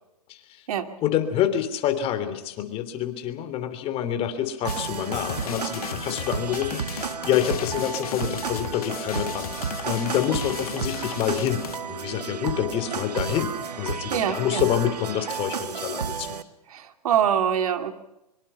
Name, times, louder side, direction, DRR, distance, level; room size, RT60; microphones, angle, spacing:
voice 1, 1.0-16.4, left 10 dB, 30° left, 9 dB, 3.1 m, -27 dB
sound 1, 4.6-16.4, right 6 dB, 90° right, 1.8 m, -32 dB
sound 2, 4.7-11.8, left 10 dB, 65° left, 1.8 m, -36 dB
voice 2, 14.1-14.7 16.7-17.9, right 9 dB, 65° right, 8 dB, 2.7 m, -24 dB
24.5 x 24.0 x 5.7 m, 0.88 s
hypercardioid pair, 135°, 20 cm